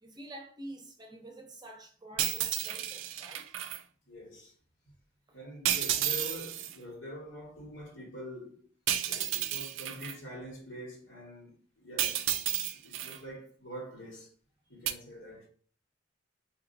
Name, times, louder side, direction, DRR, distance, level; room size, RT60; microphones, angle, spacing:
voice 1, 0.0-3.5 5.3-5.4, right 1 dB, 20° right, 0.6 m, -48 dB
sound 1, 2.2-3.8 5.6-6.7 8.9-10.1 12.0-13.2 14.9-15.0, right 11 dB, 90° right, 0.3 m, -32 dB
voice 2, 4.1-4.5 5.3-8.7 9.0-12.3 12.7-14.3 14.7-15.5, equal, 85° left, 1.8 m, -45 dB
4.3 x 2.9 x 2.5 m
head